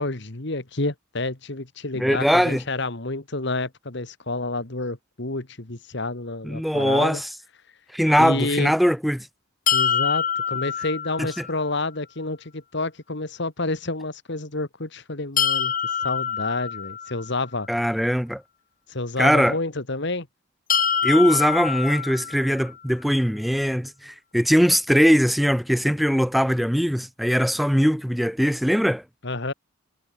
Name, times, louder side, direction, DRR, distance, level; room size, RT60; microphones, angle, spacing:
voice 1, 0.0-7.2 8.2-8.7 9.7-15.7 16.0-17.7 18.9-20.3 29.2-29.5, left 2 dB, 55° left, 1.8 m, -29 dB
voice 2, 1.9-2.6 6.4-7.3 7.9-9.3 17.7-18.4 19.2-19.6 21.0-29.0, equal, ahead, 0.7 m, -21 dB
sound 1, 9.7-11.6 15.4-17.4 20.7-22.7, left 8 dB, 40° left, 2.5 m, -25 dB
head